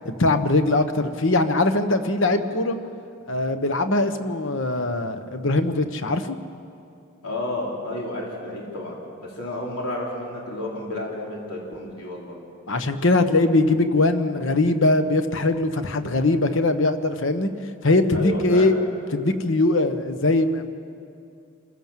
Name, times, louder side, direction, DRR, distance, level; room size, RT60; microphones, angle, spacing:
voice 1, 0.0-2.8 3.3-6.4 12.7-17.5 17.8-18.8 19.1-20.7, left 2 dB, 55° left, 9 dB, 1.1 m, -21 dB
voice 2, 7.2-12.3 18.1-18.7, left 1 dB, 90° left, -3 dB, 4.3 m, -31 dB
27.5 x 15.5 x 7.5 m, 2.5 s
head